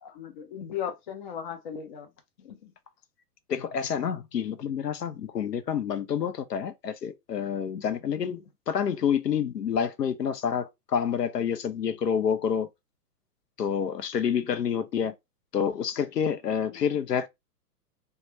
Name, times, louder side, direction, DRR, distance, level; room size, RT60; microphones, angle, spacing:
voice 1, 0.0-2.1 2.4-2.7 8.1-8.4 16.7-16.8, left 8 dB, 30° left, 0.5 m, -37 dB
voice 2, 3.5-12.7 13.6-15.1 15.5-17.3, left 7 dB, 85° left, 0.6 m, -28 dB
3.1 x 2.2 x 3.0 m
figure-of-eight pair, 115°, 48 cm